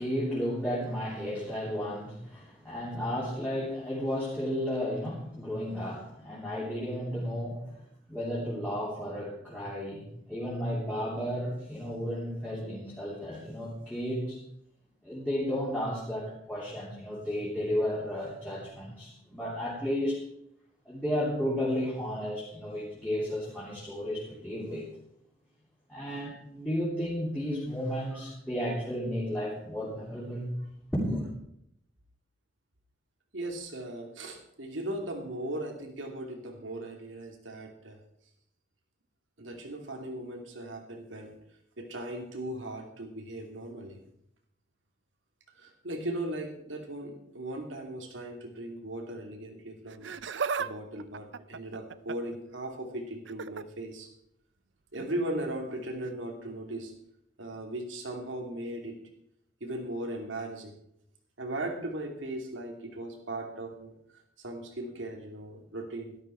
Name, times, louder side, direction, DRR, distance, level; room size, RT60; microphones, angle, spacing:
voice 1, 0.0-7.7 8.1-14.4 15.0-20.2 20.8-24.9 25.9-30.5 30.9-31.2, equal, 5° left, -8 dB, 3.2 m, -33 dB
voice 2, 33.3-38.0 39.4-41.4 41.8-44.0 45.5-50.1 50.6-54.1 54.9-56.9 57.4-59.0 59.6-60.8 61.4-66.2, right 1 dB, 90° right, 3 dB, 2.6 m, -38 dB
Laughter, 49.9-50.7 51.0-52.4 53.2-53.6 54.9-55.1 56.0-56.1, right 5 dB, 70° right, 0.5 m, -35 dB
13.0 x 12.5 x 4.5 m, 0.75 s
head